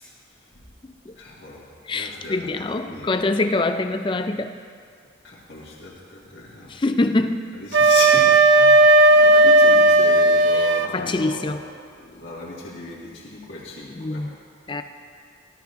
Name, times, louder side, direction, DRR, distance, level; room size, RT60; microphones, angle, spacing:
voice 1, 1.2-3.1 5.2-6.7 7.6-11.6 12.0-14.3, left 3 dB, 65° left, -8 dB, 1.9 m, -36 dB
voice 2, 1.9-4.5 6.7-7.6 10.5-11.6 14.0-14.3 14.7-14.8, left 2 dB, 25° left, 8 dB, 0.4 m, -24 dB
Wind instrument woodwind instrument, 7.7-10.9, right 2 dB, 70° right, 0.6 m, -14 dB
16.5 x 12.5 x 2.6 m, 2.1 s
head